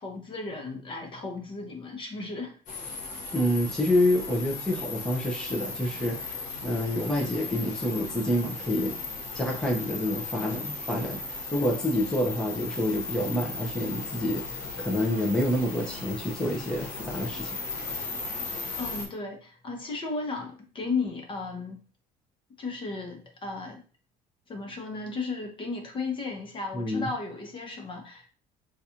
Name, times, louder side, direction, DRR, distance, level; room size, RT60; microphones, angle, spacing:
voice 1, 0.0-2.6 18.8-21.8 22.6-23.8 24.5-28.3, left 3 dB, 30° left, 2 dB, 0.9 m, -35 dB
sound 1, 2.7-19.1, left 3 dB, 50° left, 1.2 m, -37 dB
voice 2, 3.3-8.9 9.3-14.4 14.8-17.6 26.7-27.1, left 1 dB, 5° left, -2 dB, 0.7 m, -28 dB
4.0 x 2.4 x 2.8 m, 0.37 s
cardioid pair, 120°, 17 cm